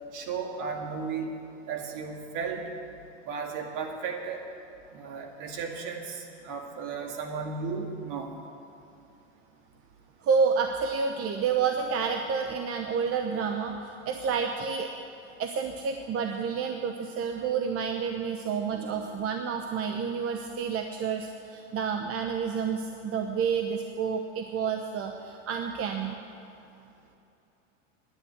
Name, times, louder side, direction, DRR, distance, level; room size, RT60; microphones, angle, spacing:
voice 1, 0.1-1.3 1.7-2.6 3.3-4.4 4.9-8.3, right 5 dB, 55° right, 2 dB, 2.2 m, -34 dB
voice 2, 10.2-14.9 15.4-26.2, right 6 dB, 40° right, 5 dB, 0.9 m, -29 dB
10.0 x 9.8 x 9.5 m, 2.7 s
hypercardioid pair, 95°, 37 cm